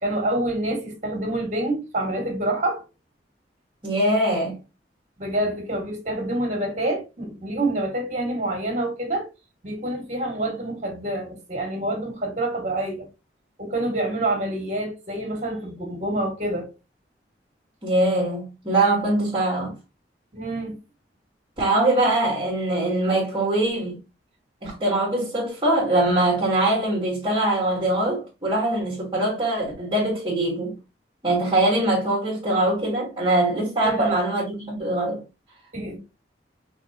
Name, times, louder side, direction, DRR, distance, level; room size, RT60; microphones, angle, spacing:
voice 1, 0.0-2.8 5.2-9.3 9.6-13.1 13.6-16.7 20.3-20.8 33.8-34.2 35.7-36.0, right 1 dB, 45° right, 1.9 m, -27 dB
voice 2, 3.8-4.6 17.8-19.8 21.6-24.0 24.6-30.8 31.2-35.2, right 1 dB, 30° right, 1.8 m, -22 dB
5.6 x 3.3 x 2.8 m
head